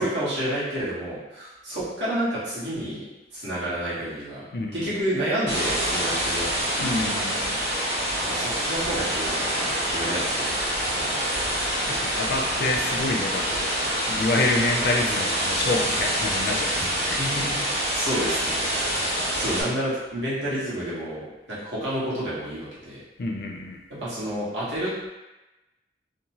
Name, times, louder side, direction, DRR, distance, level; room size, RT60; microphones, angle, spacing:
voice 1, 0.0-3.1 3.3-4.4 4.7-6.5 6.8-7.1 8.3-10.5 11.0-11.5 17.0-17.7 17.9-23.0 23.9-25.1, right 1 dB, 90° right, -9 dB, 1.2 m, -30 dB
voice 2, 4.5-5.0 6.8-7.6 11.9-13.8 14.1-17.2 23.2-23.8, left 2 dB, 60° left, 1 dB, 0.4 m, -27 dB
sound 1, 5.5-19.6, equal, 70° right, 1.1 m, -26 dB
2.8 x 2.1 x 2.8 m, 1.0 s
head